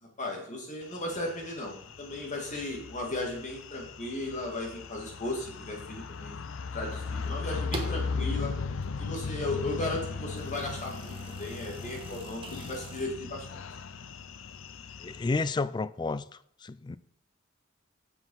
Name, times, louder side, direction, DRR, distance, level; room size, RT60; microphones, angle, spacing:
voice 1, 0.0-6.4 6.7-8.5 9.0-13.6, left 2 dB, 40° left, 2.4 m, -36 dB
sound 1, 0.9-15.5, left 4 dB, 80° left, 0.6 m, -38 dB
sound 2, 6.9-8.1 8.6-13.1, right 2 dB, 25° right, 1.2 m, -45 dB
voice 2, 15.0-16.2 16.6-17.0, left 3 dB, 20° left, 0.3 m, -30 dB
7.5 x 6.1 x 5.6 m
head